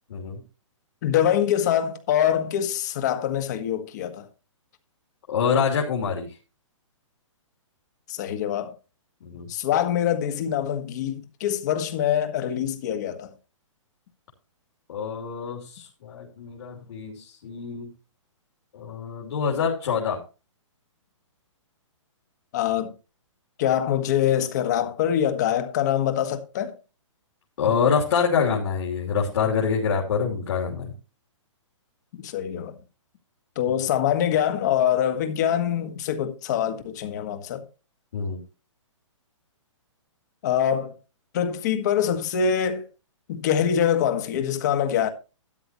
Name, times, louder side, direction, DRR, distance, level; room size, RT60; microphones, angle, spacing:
voice 1, 1.0-4.3 8.1-8.7 9.5-13.3 22.5-22.9 23.6-26.7 32.1-32.8 33.5-37.6 40.4-40.9 41.3-42.9 43.3-45.1, left 9 dB, 35° left, 1.7 m, -24 dB
voice 2, 5.3-6.4 9.2-9.5 14.9-17.9 18.7-20.2 27.6-30.9 33.7-33.8 38.1-38.4, left 6 dB, 50° left, 3.2 m, -26 dB
13.0 x 10.5 x 3.0 m
hypercardioid pair, 170°, 17 cm